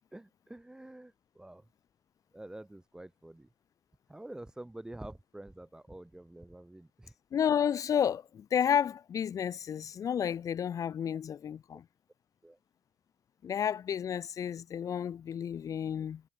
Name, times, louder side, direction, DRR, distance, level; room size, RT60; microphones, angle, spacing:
voice 1, 0.1-1.7 2.3-3.5 4.1-7.1 12.4-12.6, right 1 dB, 5° right, 1.8 m, -47 dB
voice 2, 7.3-11.8 13.4-16.2, left 8 dB, 40° left, 0.6 m, -31 dB
cardioid pair, 100°, 9 cm